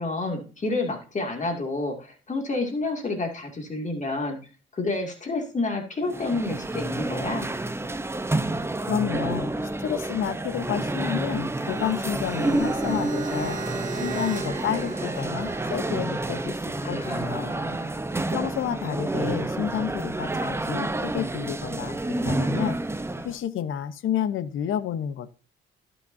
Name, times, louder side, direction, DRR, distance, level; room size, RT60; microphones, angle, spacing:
voice 1, 0.0-4.4 4.7-7.5 16.8-18.0, left 2 dB, 35° left, 2 dB, 2.3 m, -29 dB
sound 1, 6.0-23.4, right 2 dB, 10° right, 0.8 m, -29 dB
voice 2, 8.8-13.6 14.0-16.6 16.8-17.5 18.3-21.9 22.2-22.8 23.2-25.4, left 9 dB, 70° left, 14 dB, 0.9 m, -30 dB
sound 2, 11.5-16.5, right 4 dB, 35° right, 2.2 m, -37 dB
17.5 x 6.1 x 2.7 m, 0.35 s
cardioid pair, 85°, 21 cm